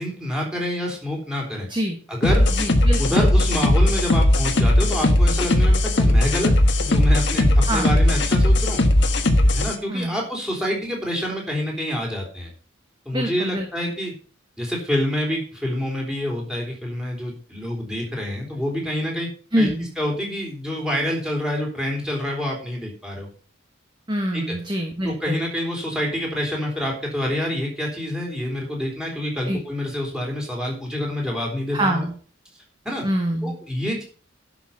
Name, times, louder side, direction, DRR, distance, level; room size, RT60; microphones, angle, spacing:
voice 1, 0.0-1.7 2.1-2.5 3.0-6.5 6.8-8.8 9.5-12.5 13.1-14.1 14.6-19.3 19.6-19.7 20.0-23.3 24.3-24.6 25.0-32.1 32.8-33.1 33.4-34.0, left 1 dB, 5° right, -2 dB, 3.7 m, -27 dB
sound 1, 2.2-9.7, left 1 dB, 60° left, 1.4 m, -18 dB
voice 2, 2.5-3.2 7.6-7.9 9.9-10.2 13.1-13.9 19.5-19.9 24.1-25.4 29.5-29.6 31.7-32.1 33.0-33.5, right 1 dB, 25° right, 3 dB, 1.4 m, -25 dB
11.5 x 6.1 x 5.8 m, 0.41 s
head